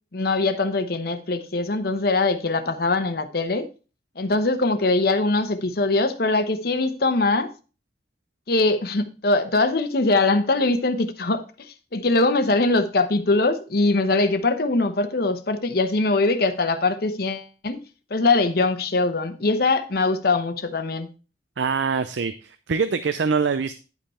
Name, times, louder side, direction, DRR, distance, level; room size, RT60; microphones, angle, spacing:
voice 1, 0.1-3.7 4.2-7.5 8.5-11.4 11.9-17.8 18.1-21.1, left 3 dB, 60° left, 9 dB, 0.9 m, -22 dB
voice 2, 21.6-23.8, right 5 dB, 85° right, 11 dB, 0.5 m, -24 dB
10.5 x 5.5 x 4.2 m, 0.34 s
head